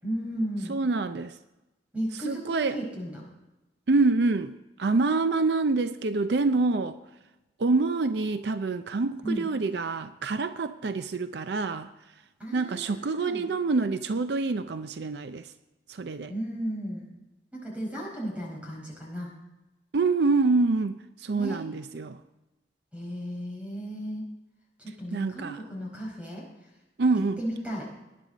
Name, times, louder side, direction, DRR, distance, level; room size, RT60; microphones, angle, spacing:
voice 1, 0.0-0.8 1.9-3.2 9.2-9.5 12.4-13.4 16.3-17.1 17.5-19.3 21.3-21.6 22.9-24.3 24.8-26.5 27.4-27.9, equal, 5° right, -2 dB, 4.7 m, -34 dB
voice 2, 0.7-1.4 2.2-2.8 3.9-7.0 7.6-11.9 12.5-15.5 15.9-16.3 19.9-22.2 25.1-25.6 27.0-27.4, right 3 dB, 70° right, 11 dB, 0.5 m, -26 dB
19.0 x 10.5 x 4.0 m, 1.0 s
head